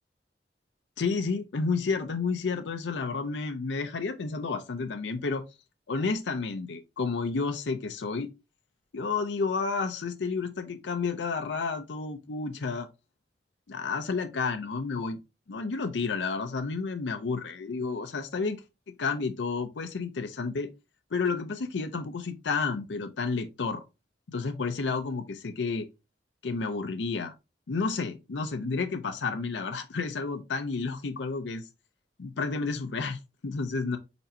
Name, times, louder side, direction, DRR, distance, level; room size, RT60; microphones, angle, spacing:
voice 1, 1.0-5.4 5.9-8.3 8.9-12.9 13.7-15.2 15.5-18.6 19.0-20.7 21.1-23.8 24.3-25.9 26.4-27.3 27.7-31.7 32.2-34.0, left 4 dB, 85° left, 0.6 m, -31 dB
4.3 x 4.1 x 2.7 m
head